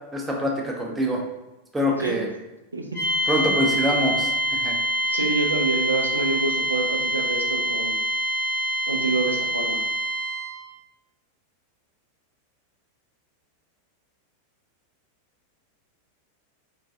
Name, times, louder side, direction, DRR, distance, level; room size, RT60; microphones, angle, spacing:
voice 1, 0.1-1.2 1.7-2.3 3.3-4.7, equal, 10° right, -1 dB, 0.5 m, -25 dB
sound 1, 2.9-10.7, right 1 dB, 40° left, 0.6 m, -25 dB
voice 2, 5.1-7.9 8.9-9.8, right 3 dB, 80° right, 2 dB, 0.4 m, -27 dB
2.3 x 2.2 x 2.5 m, 0.99 s
figure-of-eight pair, 90°, 0 cm